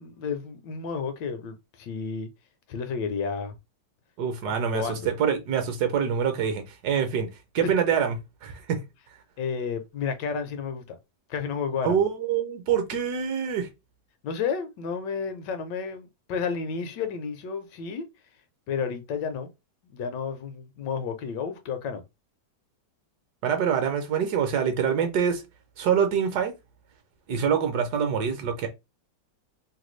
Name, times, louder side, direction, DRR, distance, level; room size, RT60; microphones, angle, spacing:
voice 1, 0.0-2.3 2.7-3.6 4.4-5.1 9.4-11.0 11.3-12.0 14.2-18.0 18.7-19.5 19.9-22.0, left 6 dB, 75° left, 1.2 m, -31 dB
voice 2, 4.2-7.3 7.5-8.1 8.4-8.8 11.8-13.7 23.4-25.4 25.8-26.5 27.3-28.7, right 7 dB, 70° right, 1.1 m, -25 dB
3.2 x 2.2 x 3.0 m
omnidirectional pair, 1.9 m